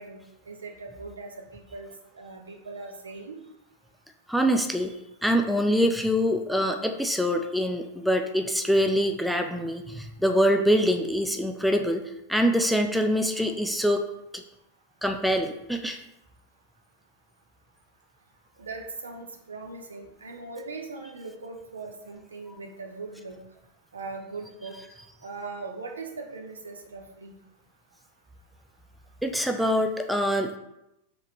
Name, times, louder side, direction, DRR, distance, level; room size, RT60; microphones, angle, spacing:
voice 1, 0.0-3.4 18.6-23.4 23.9-24.7 25.2-27.4, right 3 dB, 70° right, 2 dB, 0.6 m, -40 dB
voice 2, 4.3-4.9 5.2-12.0 12.3-14.1 15.0-16.0 29.2-30.6, equal, ahead, 5 dB, 0.3 m, -24 dB
3.7 x 3.3 x 3.0 m, 0.86 s
figure-of-eight pair, 90°, 0 cm